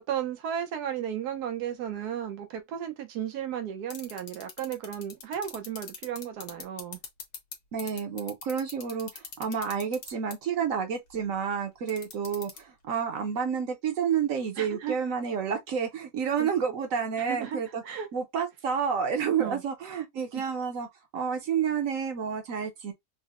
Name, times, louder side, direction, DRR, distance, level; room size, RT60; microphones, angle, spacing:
voice 1, 0.0-7.0 14.6-15.0 16.4-16.5 17.2-18.1 19.4-19.6, right 9 dB, 90° right, 1.3 m, -34 dB
sound 1, 3.9-7.5 7.8-10.3 11.9-12.6, left 7 dB, 85° left, 1.4 m, -39 dB
voice 2, 7.7-17.8 18.1-20.9 21.1-22.9, right 7 dB, 65° right, 1.0 m, -30 dB
3.8 x 2.1 x 2.3 m
omnidirectional pair, 1.6 m